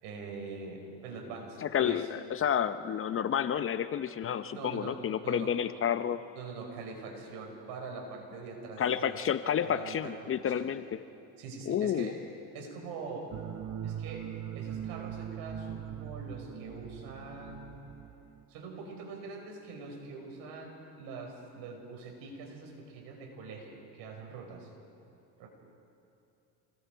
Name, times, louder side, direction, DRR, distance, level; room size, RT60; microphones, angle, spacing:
voice 1, 0.0-2.1 4.5-5.5 6.3-9.2 9.6-10.7 11.4-12.2 12.5-13.3 13.8-17.8 18.5-24.7 25.4-25.5, right 4 dB, 75° right, 2 dB, 5.2 m, -43 dB
voice 2, 1.6-6.2 8.8-11.0 11.7-12.1, left 9 dB, 35° left, 12 dB, 0.7 m, -30 dB
sound 1, 13.3-18.4, right 9 dB, 50° right, 1.1 m, -41 dB
28.5 x 20.5 x 4.6 m, 2.8 s
supercardioid pair, 105°, 39 cm